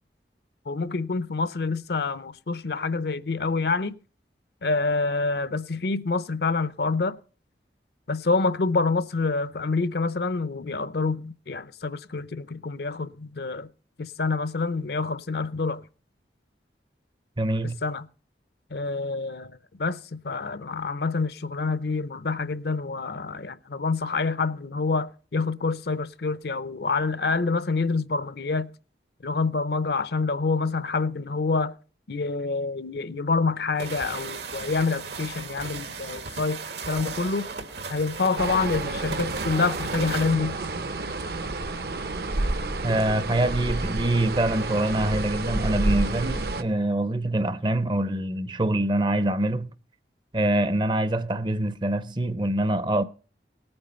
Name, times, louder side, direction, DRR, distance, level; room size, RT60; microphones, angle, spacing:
voice 1, 0.7-3.9 4.6-7.2 8.1-13.7 14.0-15.8 17.6-18.1 18.7-19.5 19.8-28.7 29.2-31.7 32.1-37.5 37.9-40.6, left 4 dB, 65° left, 0.6 m, -27 dB
voice 2, 17.4-17.8 42.8-49.7 50.3-53.0, right 1 dB, 25° right, 0.5 m, -25 dB
sound 1, 33.8-40.4, right 4 dB, 80° right, 1.6 m, -36 dB
sound 2, 38.4-46.6, right 2 dB, 60° right, 0.8 m, -29 dB
18.5 x 8.8 x 4.3 m
head